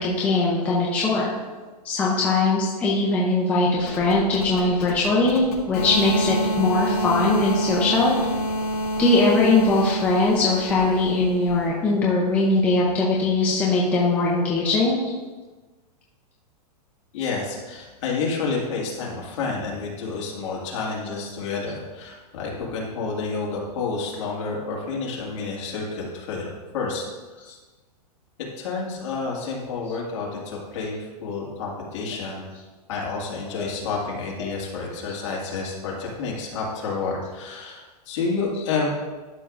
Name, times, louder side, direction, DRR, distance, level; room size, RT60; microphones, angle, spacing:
voice 1, 0.0-1.3 1.8-8.1 9.0-15.0 33.6-33.7, left 2 dB, 5° left, -5 dB, 0.5 m, -21 dB
sound 1, 3.8-11.7, equal, 70° left, 2.0 m, -28 dB
voice 2, 17.1-26.5 26.7-27.0 27.3-27.4 28.6-32.5 32.9-38.9, left 4 dB, 45° left, -3 dB, 2.0 m, -29 dB
12.0 x 5.6 x 2.5 m, 1.3 s
supercardioid pair, 170°, 20 cm